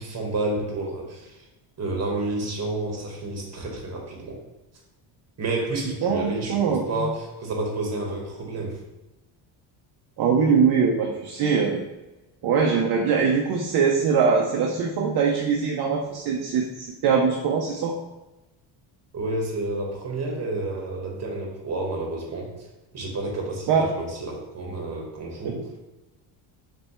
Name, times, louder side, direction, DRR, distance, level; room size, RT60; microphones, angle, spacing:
voice 1, 0.0-1.3 1.8-4.4 5.4-8.8 19.1-22.5 22.9-25.6, right 2 dB, 30° right, -1 dB, 1.4 m, -30 dB
voice 2, 6.0-7.1 10.2-11.8 12.4-18.0 23.7-23.9 25.4-25.5, right 6 dB, 50° right, 0 dB, 0.7 m, -22 dB
3.4 x 3.2 x 4.2 m, 1.0 s
cardioid pair, 120°, 50 cm